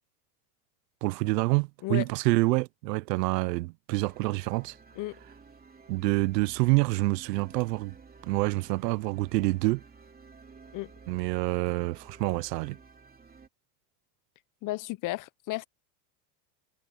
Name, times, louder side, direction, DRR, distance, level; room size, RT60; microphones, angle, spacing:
voice 1, 1.0-4.8 5.9-7.9 8.2-9.8 11.1-12.8, right 22 dB, 85° right, 0.8 m, -27 dB
sound 1, 4.0-13.5, right 5 dB, 20° right, 2.9 m, -53 dB
voice 2, 14.6-15.6, left 19 dB, 40° left, 0.7 m, -33 dB
supercardioid pair, 110°, 48 cm